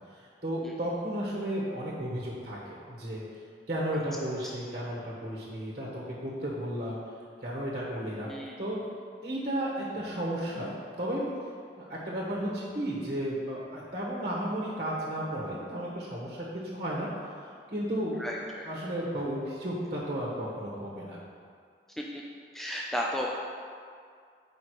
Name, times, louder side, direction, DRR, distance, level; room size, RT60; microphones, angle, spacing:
voice 1, 0.1-3.2 3.7-7.0 7.4-8.3 8.6-8.8 9.2-10.7 11.0-11.3 11.8-17.1 17.7-18.3 18.6-21.2, right 1 dB, 45° right, -5 dB, 1.3 m, -33 dB
voice 2, 18.2-18.7 22.0-22.1 22.5-23.3, equal, ahead, -3 dB, 0.4 m, -33 dB
8.4 x 5.1 x 4.8 m, 2.2 s
head